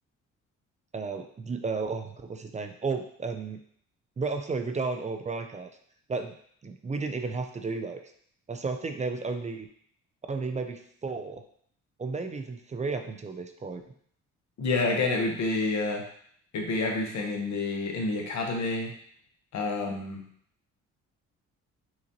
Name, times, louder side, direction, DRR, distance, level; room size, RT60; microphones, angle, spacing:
voice 1, 0.9-3.6 4.2-5.7 6.1-6.3 6.6-8.0 8.5-9.7 10.3-11.4 12.0-13.8, right 4 dB, 25° right, 6 dB, 0.4 m, -33 dB
voice 2, 14.6-16.0 16.5-18.9 19.5-20.2, left 3 dB, 65° left, 1 dB, 1.0 m, -28 dB
5.8 x 2.5 x 2.8 m, 0.63 s
cardioid pair, 90°, 30 cm